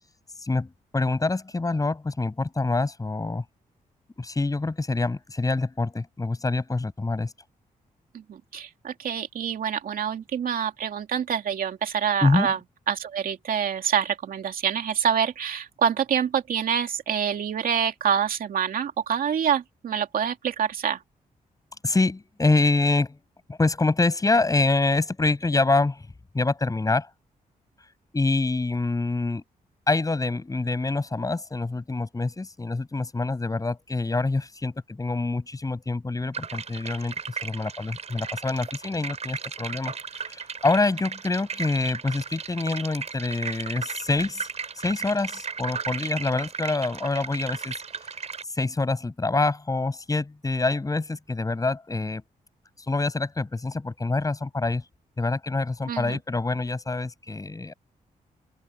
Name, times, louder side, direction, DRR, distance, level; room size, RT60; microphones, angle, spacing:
voice 1, 0.9-3.4 4.2-7.3 12.2-12.5 21.8-23.2 23.5-26.1 26.3-27.1 28.1-29.4 29.9-37.1 37.4-44.5 44.8-47.7 48.5-52.2 52.9-54.8 55.2-57.7, left 3 dB, 25° left, 7.4 m, -26 dB
voice 2, 8.1-12.6 12.9-21.0 55.9-56.2, right 8 dB, 70° right, 2.7 m, -26 dB
sound 1, 36.3-48.4, right 6 dB, 45° right, 4.7 m, -35 dB
open air
cardioid pair, 105°, 15 cm